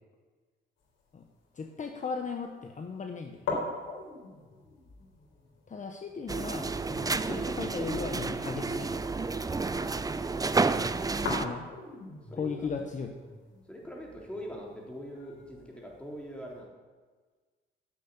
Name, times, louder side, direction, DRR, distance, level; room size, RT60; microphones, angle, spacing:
sound 1, 0.8-16.6, left 3 dB, 85° left, 3.6 m, -43 dB
voice 1, 1.5-3.5 5.7-8.9 11.4-11.7 12.3-13.1, left 5 dB, 40° left, 4 dB, 1.1 m, -37 dB
sound 2, 6.3-11.5, right 3 dB, 20° right, 0.6 m, -30 dB
voice 2, 12.3-13.1 13.7-16.7, equal, 5° left, -2 dB, 3.8 m, -43 dB
10.5 x 8.3 x 8.3 m, 1.4 s
cardioid pair, 90°, 20 cm